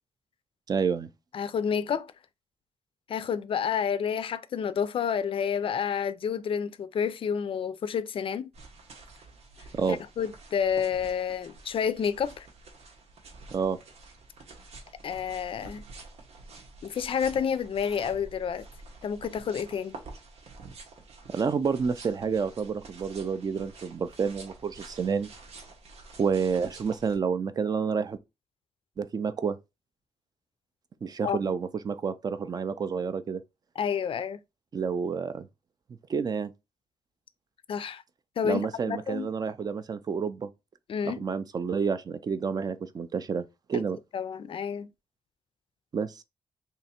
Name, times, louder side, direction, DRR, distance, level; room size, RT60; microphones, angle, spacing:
voice 1, 0.7-1.1 9.8-10.0 13.5-13.8 21.3-25.3 26.2-28.2 29.0-29.6 31.0-33.4 34.7-35.5 36.1-36.5 38.4-40.5 41.0-43.4 43.7-44.0 45.9-46.2, right 6 dB, 40° right, 0.4 m, -29 dB
voice 2, 1.3-2.1 3.1-8.5 9.9-12.5 15.0-15.8 16.8-18.6 19.0-20.0 31.2-31.4 33.8-34.4 37.7-38.0 38.4-39.3 40.9-41.2 44.1-44.9, left 7 dB, 60° left, 0.3 m, -29 dB
sound 1, 8.5-27.2, right 3 dB, 90° right, 1.1 m, -49 dB
3.3 x 2.8 x 4.1 m
wide cardioid pair, 180°, 11 cm